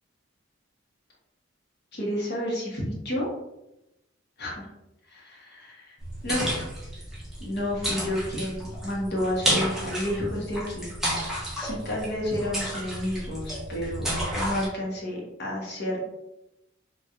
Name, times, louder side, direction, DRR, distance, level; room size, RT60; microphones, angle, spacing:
voice 1, 1.9-3.3 4.4-4.7 5.1-5.9 6.2-6.6 7.4-10.9 11.5-16.0, left 1 dB, 55° left, -3 dB, 1.0 m, -30 dB
sound 1, 6.0-14.7, equal, ahead, 0.8 m, -31 dB
4.2 x 2.4 x 2.4 m, 0.90 s
head